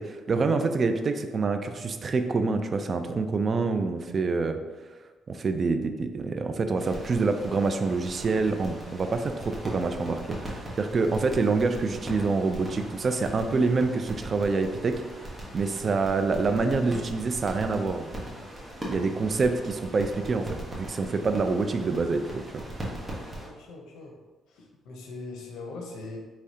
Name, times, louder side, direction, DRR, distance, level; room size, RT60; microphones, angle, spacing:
voice 1, 0.0-4.6 5.3-15.3 15.5-18.1 18.9-22.5, right 4 dB, 45° right, 8 dB, 0.4 m, -26 dB
sound 1, 6.8-23.5, right 1 dB, 15° right, 1.2 m, -39 dB
voice 2, 23.4-24.1 24.9-26.2, left 3 dB, 85° left, 1 dB, 0.8 m, -40 dB
4.9 x 3.1 x 2.8 m, 1.3 s
cardioid pair, 90°, 0 cm